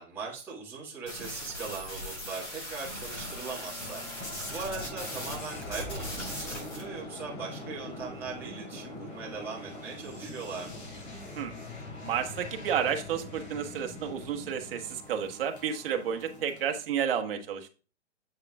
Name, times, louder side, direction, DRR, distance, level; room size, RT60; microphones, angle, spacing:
voice 1, 0.0-4.2 4.5-10.8, right 5 dB, 5° right, -7 dB, 1.6 m, -40 dB
sound 1, 1.1-5.4 5.6-6.8, left 1 dB, 25° left, 4.1 m, -39 dB
sound 2, 3.0-16.8, left 1 dB, 45° left, 3.2 m, -43 dB
voice 2, 12.0-17.7, right 8 dB, 50° right, 4 dB, 1.3 m, -31 dB
7.8 x 6.7 x 2.3 m, 0.34 s
hypercardioid pair, 160°, 36 cm